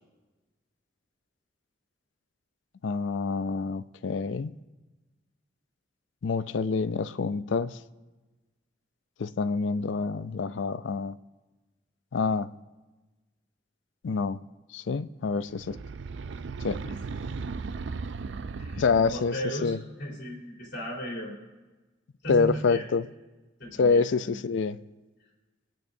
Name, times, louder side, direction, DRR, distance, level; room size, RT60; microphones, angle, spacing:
voice 1, 2.8-4.6 6.2-7.8 9.2-11.2 12.1-12.5 14.0-14.4 14.7-15.8 16.6-16.8 18.8-19.8 22.3-23.1 23.8-24.8, left 4 dB, 85° left, 14 dB, 0.4 m, -27 dB
sound 1, 15.5-19.4, right 4 dB, 75° right, 0.4 m, -36 dB
voice 2, 18.6-21.3 22.2-22.9 23.6-24.4, equal, 65° left, -3 dB, 3.6 m, -36 dB
21.5 x 8.8 x 2.7 m, 1.2 s
head